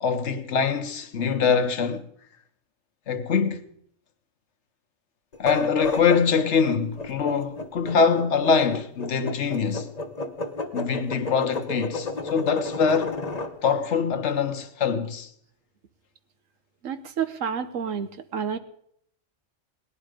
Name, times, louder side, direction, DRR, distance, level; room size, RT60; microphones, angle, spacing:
voice 1, 0.0-2.1 3.1-3.6 5.4-9.9 10.7-13.2 13.6-15.3, left 6 dB, 65° left, 1.3 m, -23 dB
sound 1, 5.3-13.5, left 2 dB, 35° left, 1.1 m, -32 dB
voice 2, 16.8-18.6, right 7 dB, 80° right, 1.3 m, -29 dB
18.5 x 11.5 x 5.1 m
omnidirectional pair, 1.3 m